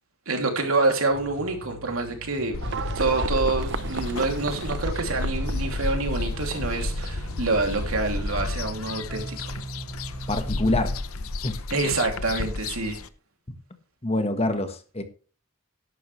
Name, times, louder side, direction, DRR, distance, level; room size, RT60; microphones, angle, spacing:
voice 1, 0.3-9.6 11.7-13.0, right 3 dB, 85° right, 3 dB, 2.9 m, -27 dB
sound 1, 1.1-11.0, right 2 dB, 5° right, 6.1 m, -40 dB
sound 2, 2.5-13.1, left 2 dB, 90° left, 0.8 m, -31 dB
Livestock farm animals working animals, 2.6-8.7, right 5 dB, 60° right, 0.7 m, -37 dB
voice 2, 10.3-10.9 11.4-11.6 14.0-15.0, left 2 dB, 30° left, 7 dB, 1.5 m, -25 dB
12.5 x 11.5 x 3.3 m, 0.38 s
head